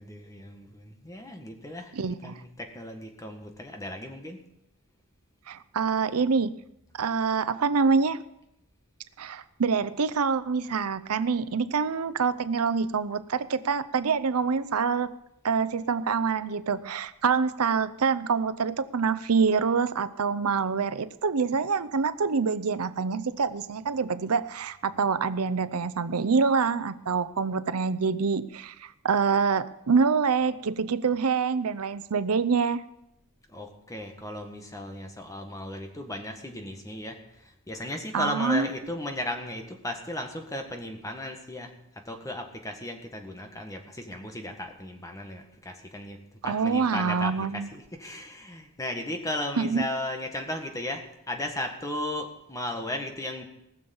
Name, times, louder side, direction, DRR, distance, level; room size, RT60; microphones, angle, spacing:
voice 1, 0.0-4.4 33.5-37.2 37.4-41.7 42.1-46.2 46.4-53.4, left 1 dB, 15° left, 4 dB, 1.7 m, -36 dB
voice 2, 1.9-2.3 5.5-6.5 6.9-8.2 9.2-15.1 15.4-32.8 38.1-38.7 46.4-47.7 49.6-49.8, right 5 dB, 90° right, 14 dB, 0.6 m, -26 dB
19.0 x 7.1 x 7.1 m, 0.83 s
head